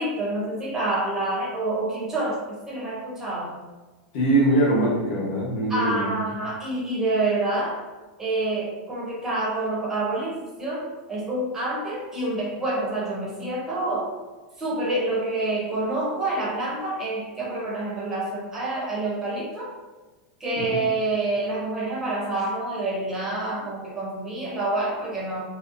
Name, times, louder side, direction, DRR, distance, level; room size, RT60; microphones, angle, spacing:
voice 1, 0.0-2.4 2.7-3.6 5.7-7.8 8.2-14.1 14.6-19.7 20.4-25.4, right 2 dB, 10° right, -6 dB, 0.6 m, -27 dB
voice 2, 4.1-6.1 20.6-20.7, right 1 dB, 40° left, -5 dB, 0.8 m, -22 dB
2.6 x 2.0 x 2.5 m, 1.2 s
supercardioid pair, 175°, 5 cm